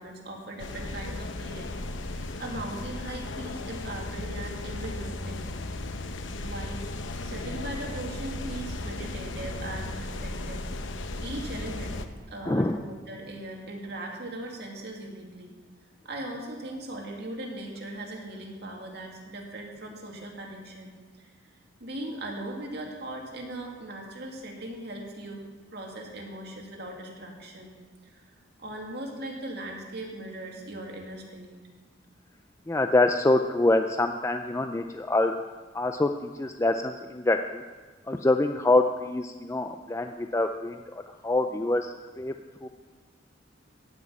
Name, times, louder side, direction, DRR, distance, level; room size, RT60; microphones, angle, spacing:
voice 1, 0.0-1.8 2.1-5.5 6.4-6.8 7.2-10.9 11.2-12.0 12.3-15.5 16.0-20.9 21.2-21.3 21.8-25.5 25.7-27.7 28.0-28.2 28.6-31.6, right 1 dB, 60° right, 0 dB, 2.4 m, -39 dB
sound 1, 0.6-12.0, left 2 dB, 80° left, 0.9 m, -36 dB
voice 2, 12.4-12.8 32.7-35.3 35.7-37.6 38.1-42.3 42.6-42.7, left 2 dB, 15° left, 6 dB, 0.4 m, -25 dB
14.5 x 6.1 x 9.2 m, 1.3 s
head